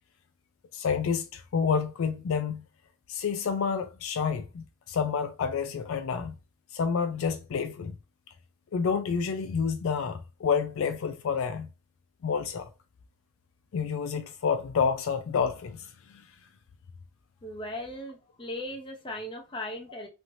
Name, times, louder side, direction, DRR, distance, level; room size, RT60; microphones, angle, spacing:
voice 1, 0.7-2.6 3.1-6.3 6.7-7.9 8.7-11.7 12.2-12.7 13.7-15.9, left 6 dB, 65° left, 0.3 m, -29 dB
voice 2, 17.4-20.1, left 1 dB, 20° left, 0.6 m, -38 dB
3.1 x 2.8 x 2.6 m
head